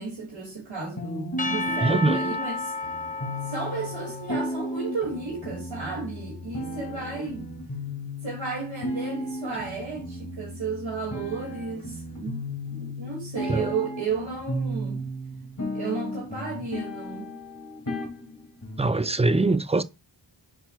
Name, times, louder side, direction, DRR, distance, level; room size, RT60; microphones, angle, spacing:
voice 1, 0.0-2.7 3.4-7.5 8.2-12.4 12.7-15.0 15.7-17.3, right 4 dB, 80° right, 2.4 m, -33 dB
sound 1, 1.0-18.9, equal, 40° left, 2.3 m, -34 dB
Percussion / Church bell, 1.4-5.6, left 2 dB, 20° left, 0.7 m, -33 dB
voice 2, 1.8-2.2 13.5-13.7 18.8-19.8, right 3 dB, 15° right, 0.3 m, -22 dB
11.5 x 4.4 x 2.3 m
wide cardioid pair, 45°, 46 cm